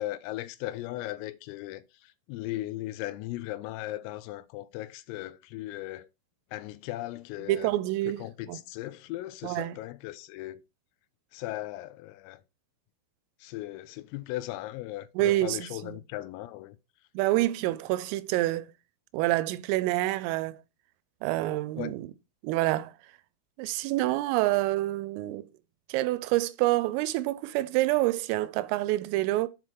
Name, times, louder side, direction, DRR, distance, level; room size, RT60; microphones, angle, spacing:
voice 1, 0.0-6.1 6.5-7.7 8.1-10.6 11.3-12.4 13.4-16.8 21.8-21.9, left 16 dB, 90° left, 3.3 m, -37 dB
voice 2, 7.4-8.6 9.4-9.8 15.2-16.0 17.2-18.7 19.1-20.6 21.2-22.1 22.4-22.9 23.6-25.5 25.9-29.5, right 17 dB, 90° right, 3.2 m, -27 dB
7.7 x 3.8 x 4.4 m
omnidirectional pair, 5.8 m